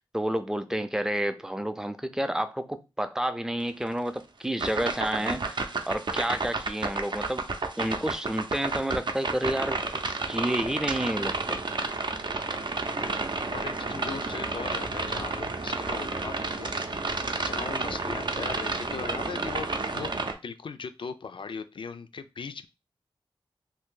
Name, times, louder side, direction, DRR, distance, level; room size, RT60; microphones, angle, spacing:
voice 1, 0.0-7.5 7.8-9.8 10.3-11.6, right 1 dB, 5° right, 0.4 m, -30 dB
sound 1, 4.6-20.3, right 3 dB, 55° right, 0.5 m, -31 dB
voice 2, 13.5-16.8 17.4-19.7 19.9-20.1 20.4-22.7, left 5 dB, 65° left, 0.4 m, -38 dB
2.7 x 2.6 x 3.7 m
cardioid pair, 55°, 9 cm